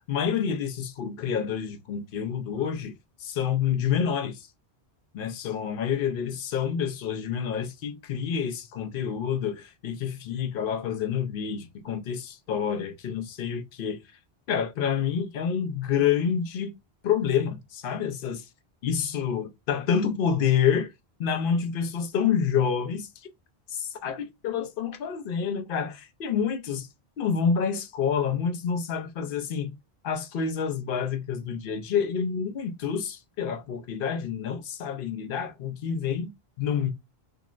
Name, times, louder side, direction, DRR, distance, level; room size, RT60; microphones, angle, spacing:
voice 1, 0.1-2.9 3.2-4.5 5.1-14.0 14.5-16.8 17.0-18.5 18.8-20.9 21.2-23.1 23.7-26.9 27.2-29.7 30.0-36.9, left 7 dB, 65° left, 0.7 m, -28 dB
3.6 x 2.0 x 2.4 m
omnidirectional pair, 1.1 m